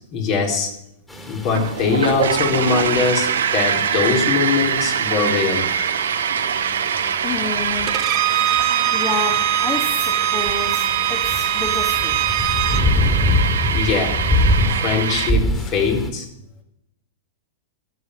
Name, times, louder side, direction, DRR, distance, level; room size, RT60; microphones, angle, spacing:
voice 1, 0.1-0.7 1.3-5.7 13.7-14.2 14.6-16.3, left 5 dB, 45° left, 2 dB, 4.0 m, -21 dB
sound 1, 1.1-16.1, left 1 dB, 10° left, 3.2 m, -26 dB
sound 2, 1.5-15.3, right 8 dB, 75° right, 1.0 m, -23 dB
voice 2, 7.2-7.9 8.9-12.5, left 4 dB, 25° left, 1 dB, 2.2 m, -29 dB
Bowed string instrument, 7.9-12.8, right 12 dB, 40° right, 1.3 m, -22 dB
14.0 x 7.8 x 7.9 m, 0.82 s
hypercardioid pair, 105°, 0 cm